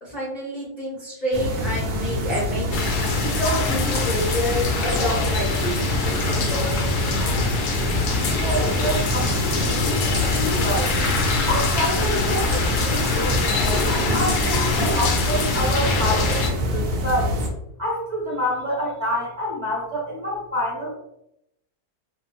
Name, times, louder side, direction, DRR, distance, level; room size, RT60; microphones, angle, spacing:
voice 1, 0.0-5.9, equal, 40° left, -8 dB, 0.7 m, -28 dB
sound 1, 1.3-17.5, left 1 dB, 75° right, 0.5 m, -25 dB
sound 2, 2.7-16.5, left 3 dB, 90° left, 1.1 m, -25 dB
voice 2, 8.3-10.9 11.5-13.4 14.1-17.3 17.8-20.9, equal, 30° right, -7 dB, 1.0 m, -27 dB
2.7 x 2.0 x 2.7 m, 0.80 s
omnidirectional pair, 1.6 m